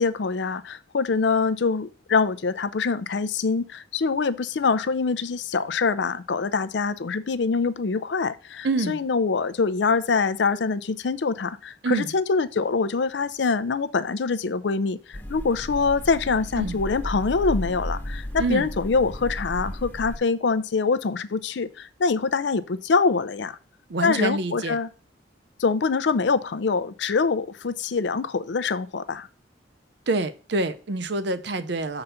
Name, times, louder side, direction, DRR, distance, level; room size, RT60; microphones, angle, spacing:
voice 1, 0.0-23.6 24.0-24.9 25.6-29.3, left 4 dB, 70° left, 13 dB, 0.5 m, -24 dB
voice 2, 8.6-9.0 11.8-12.1 16.6-16.8 18.4-18.7 23.9-24.8 30.1-32.0, right 2 dB, 70° right, 12 dB, 0.7 m, -26 dB
sound 1, 15.1-20.2, equal, 10° left, 0.8 m, -33 dB
6.7 x 4.0 x 5.7 m, 0.37 s
head